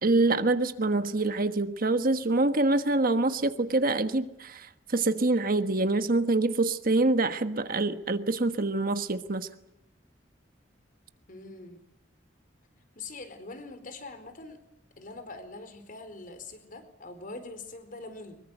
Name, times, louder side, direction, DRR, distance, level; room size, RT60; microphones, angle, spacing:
voice 1, 0.0-9.5, right 2 dB, 50° right, 1.4 m, -25 dB
voice 2, 11.3-11.8 12.9-14.6 15.0-18.4, left 3 dB, 50° left, 4.3 m, -43 dB
24.5 x 22.5 x 8.1 m
head